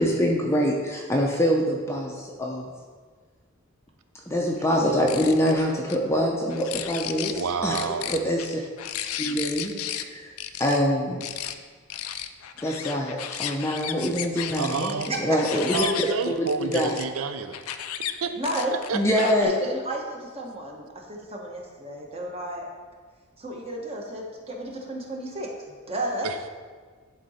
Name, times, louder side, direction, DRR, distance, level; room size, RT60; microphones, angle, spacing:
voice 1, 0.0-2.6 4.3-8.6 9.2-10.3 10.6-11.2 12.6-17.0 18.9-19.5, equal, 10° left, -1 dB, 0.6 m, -25 dB
sound 1, 4.9-5.5 5.9-6.0 6.5-7.4 7.7-10.0 10.4-10.8 11.2-11.5 11.9-17.0 17.5-18.1 18.4-19.4, left 10 dB, 85° left, 0.4 m, -34 dB
voice 2, 7.3-8.2 14.6-15.1 15.7-17.6 18.2-18.3 18.9-19.0 26.2-26.5, right 5 dB, 75° right, 8 dB, 0.6 m, -29 dB
voice 3, 15.1-15.4 18.3-18.7 19.2-22.7 23.4-26.3, right 1 dB, 30° right, 0 dB, 1.1 m, -32 dB
11.0 x 3.8 x 4.2 m, 1.6 s
head